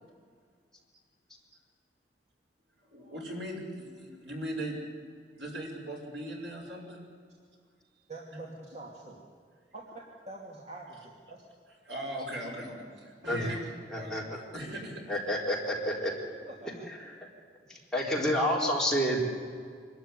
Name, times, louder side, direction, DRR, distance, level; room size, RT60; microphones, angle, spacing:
voice 1, 2.9-4.8 5.3-7.0 11.8-14.2 14.5-15.2, right 1 dB, 85° right, 0 dB, 5.8 m, -39 dB
voice 2, 8.1-9.2 9.7-11.4 16.5-16.9, right 2 dB, 40° right, -3 dB, 2.6 m, -45 dB
voice 3, 13.9-14.2 15.1-16.1 17.0-17.1 17.9-19.2, equal, 5° left, -4 dB, 4.1 m, -28 dB
25.5 x 13.0 x 9.8 m, 2.1 s
head